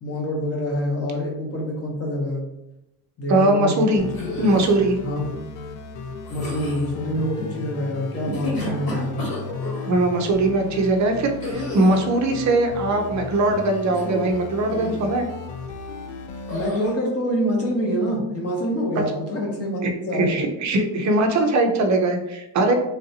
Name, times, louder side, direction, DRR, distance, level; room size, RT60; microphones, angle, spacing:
voice 1, 0.0-2.4 3.2-3.9 5.0-5.3 6.3-9.3 16.5-20.4, equal, 30° left, 0 dB, 0.8 m, -26 dB
voice 2, 3.3-4.0 4.4-5.0 9.9-15.3 19.8-22.7, right 2 dB, 35° right, 4 dB, 0.5 m, -20 dB
sound 1, 4.0-16.7, left 4 dB, 75° left, 0.6 m, -35 dB
sound 2, 4.1-4.8 6.2-6.9 8.1-9.9 11.4-12.1 13.9-14.4 14.7-15.1 16.5-16.9, left 1 dB, 60° left, 1.5 m, -32 dB
3.3 x 2.6 x 2.7 m, 0.90 s
cardioid pair, 120°, 48 cm